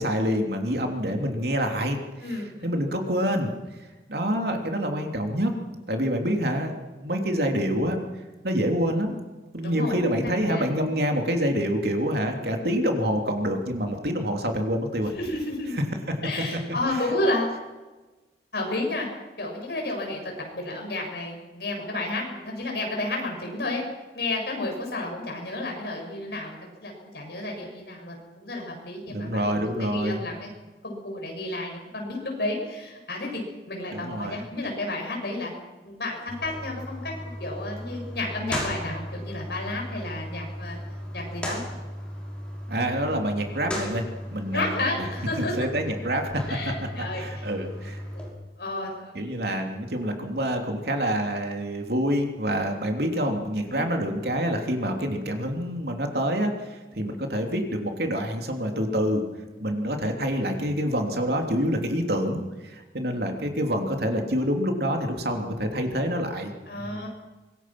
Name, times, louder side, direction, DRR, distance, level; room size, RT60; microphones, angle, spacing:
voice 1, 0.0-2.0 2.2-3.5 4.1-5.5 5.9-8.0 8.4-9.2 9.5-15.1 16.9-17.1 29.0-30.2 33.9-34.4 42.7-44.0 44.3-45.1 45.4-46.4 47.1-48.0 49.1-59.2 59.6-67.1, equal, 65° right, 3 dB, 3.2 m, -27 dB
voice 2, 2.2-2.7 9.6-10.0 10.5-10.6 15.2-15.7 16.2-17.6 18.5-19.1 19.4-23.8 24.1-30.5 30.8-33.4 33.7-35.5 35.8-37.1 37.4-40.8 41.1-41.6 44.5-45.7 46.5-47.5 48.1-48.2 48.6-49.1 53.7-53.9 66.7-67.1, left 2 dB, 65° left, 1 dB, 7.4 m, -31 dB
sound 1, 36.3-48.3, equal, 5° left, 6.0 m, -36 dB
25.0 x 21.5 x 6.1 m, 1.2 s
head